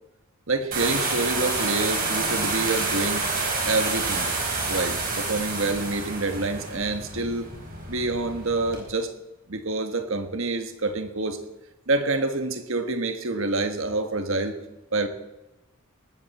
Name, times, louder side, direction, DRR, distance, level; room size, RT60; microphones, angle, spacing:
voice 1, 0.5-3.3 3.6-4.3 4.7-7.5 7.9-9.1 9.5-11.4 11.9-14.6 14.9-15.1, right 2 dB, 65° right, 7 dB, 1.5 m, -27 dB
sound 1, 0.7-8.8, right 3 dB, 40° right, 5.0 m, -28 dB
19.5 x 13.0 x 4.3 m, 1.0 s
head